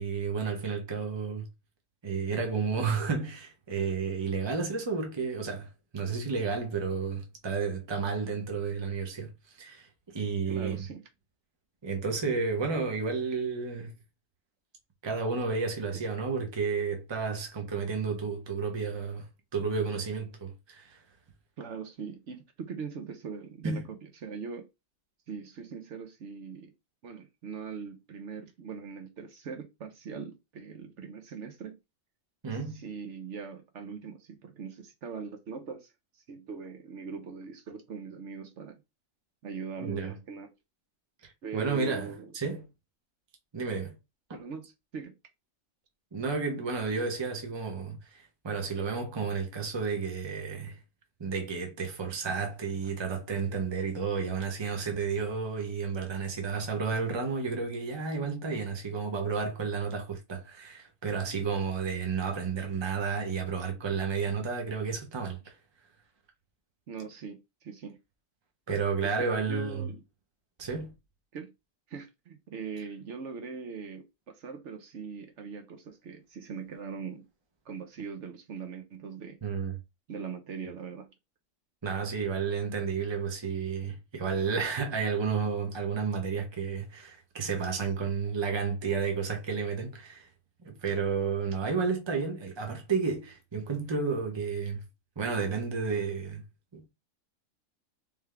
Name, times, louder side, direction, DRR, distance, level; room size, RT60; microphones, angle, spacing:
voice 1, 0.0-1.5 2.0-10.8 11.8-13.9 15.0-19.3 19.5-21.0 23.6-23.9 32.4-32.8 39.8-40.1 41.2-42.7 43.5-43.9 46.1-50.8 51.2-65.5 68.7-69.8 70.6-70.9 79.4-79.8 81.8-90.3 90.6-94.8 95.2-96.4 96.7-96.9, right 5 dB, 25° right, 0.8 m, -32 dB
voice 2, 10.5-11.0 21.6-24.7 25.3-26.7 27.0-31.8 32.7-35.9 36.3-38.8 39.4-40.5 41.4-42.3 44.3-45.1 66.9-68.0 69.0-70.0 71.3-71.5 71.9-77.3 77.6-79.4 80.1-81.1, right 5 dB, 65° right, 1.1 m, -41 dB
3.4 x 3.4 x 3.3 m
omnidirectional pair, 1.4 m